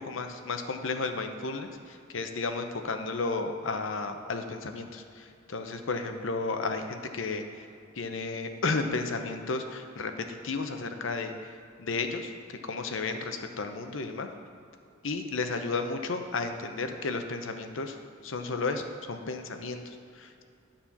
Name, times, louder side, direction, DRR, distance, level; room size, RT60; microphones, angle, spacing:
voice 1, 0.0-7.4 8.0-11.3 11.8-12.3 12.7-14.3 15.0-18.0 18.2-20.4, left 3 dB, 75° left, 6 dB, 0.8 m, -33 dB
10.0 x 4.4 x 7.1 m, 2.5 s
head